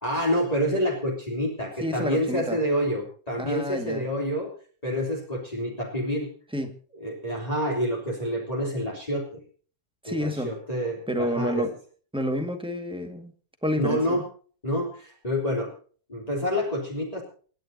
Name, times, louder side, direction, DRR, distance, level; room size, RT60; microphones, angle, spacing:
voice 1, 0.0-4.5 4.8-6.3 7.0-9.4 10.1-11.7 13.8-14.2 14.6-15.7 16.1-17.2, equal, 25° left, -2 dB, 3.5 m, -28 dB
voice 2, 1.8-2.6 3.4-4.0 6.5-6.8 10.0-10.5 11.1-11.7 12.1-13.3 13.6-14.2, equal, 5° right, 5 dB, 1.9 m, -29 dB
28.5 x 10.5 x 2.8 m, 0.42 s
omnidirectional pair, 1.7 m